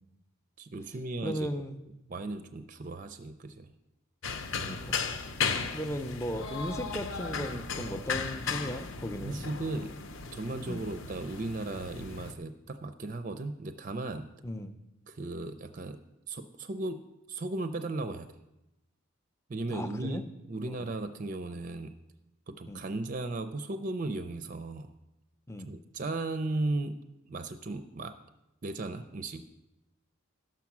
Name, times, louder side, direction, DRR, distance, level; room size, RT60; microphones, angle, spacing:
voice 1, 0.6-1.5 2.1-3.7 9.2-10.0 10.3-14.3 15.1-16.0 16.3-17.0 17.3-18.3 19.5-20.2 20.5-21.9 22.5-24.9 25.6-27.0 27.3-28.1 28.6-29.4, right 2 dB, 35° right, 9 dB, 0.5 m, -36 dB
voice 2, 1.2-1.8 2.2-2.3 4.6-5.0 5.7-9.4 10.7-10.9 14.4-14.7 19.7-20.2 20.7-20.8 22.7-22.8 25.5-25.7, equal, 10° left, 8 dB, 0.5 m, -36 dB
sound 1, 4.2-12.3, left 5 dB, 55° left, 0.8 m, -36 dB
12.0 x 7.2 x 6.0 m, 0.94 s
head